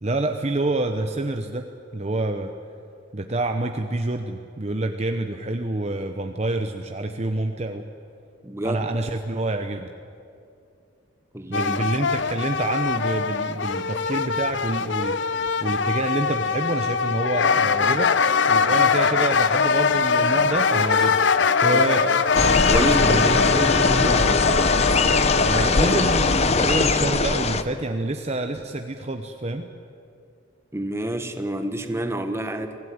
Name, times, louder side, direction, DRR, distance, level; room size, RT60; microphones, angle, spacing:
voice 1, 0.0-2.5 3.1-7.8 8.6-9.9 11.5-18.1 18.5-21.2 21.6-22.1 22.7-23.7 25.4-29.7, right 2 dB, 35° right, 5 dB, 0.9 m, -27 dB
voice 2, 8.4-8.8 11.3-11.8 21.7-22.0 22.7-24.5 30.7-32.8, right 1 dB, 15° right, 7 dB, 1.4 m, -28 dB
sound 1, 11.5-27.0, left 5 dB, 60° left, 0.7 m, -22 dB
sound 2, 22.3-27.6, left 3 dB, 30° left, 0.8 m, -21 dB
24.5 x 16.0 x 9.5 m, 2.5 s
head